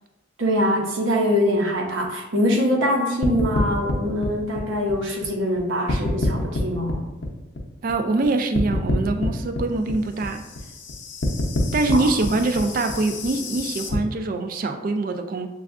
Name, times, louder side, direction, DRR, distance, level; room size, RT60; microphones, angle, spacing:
voice 1, 0.4-7.0 11.9-12.0, equal, 75° right, 1 dB, 0.8 m, -23 dB
sound 1, 3.2-5.6 5.9-8.3 8.5-14.0, left 2 dB, 70° left, 0.6 m, -27 dB
voice 2, 7.8-10.4 11.7-15.5, right 2 dB, 45° right, 6 dB, 0.3 m, -24 dB
6.9 x 2.3 x 2.4 m, 1.0 s
head